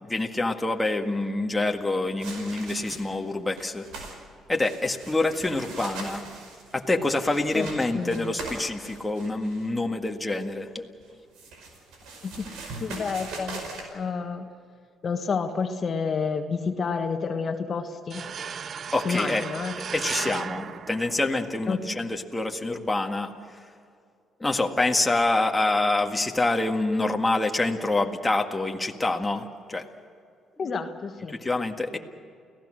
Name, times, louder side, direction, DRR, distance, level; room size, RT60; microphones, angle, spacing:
voice 1, 0.0-3.9 4.5-6.2 6.7-10.9 18.9-19.4 19.9-23.3 24.4-29.8 31.3-32.0, left 2 dB, 15° left, 2 dB, 1.8 m, -26 dB
sound 1, 2.2-3.2 3.5-4.2 4.5-9.7 11.0-13.8, right 3 dB, 85° right, 5.2 m, -41 dB
voice 2, 7.9-8.3 12.2-12.5 12.8-13.6 13.9-14.5 15.0-18.2 19.0-19.7 21.7-21.8 30.6-31.4, left 5 dB, 45° left, 5 dB, 1.4 m, -29 dB
sound 2, 18.1-21.7, right 7 dB, 50° right, 0.5 m, -36 dB
29.5 x 16.5 x 6.5 m, 2.3 s
cardioid pair, 95°, 0 cm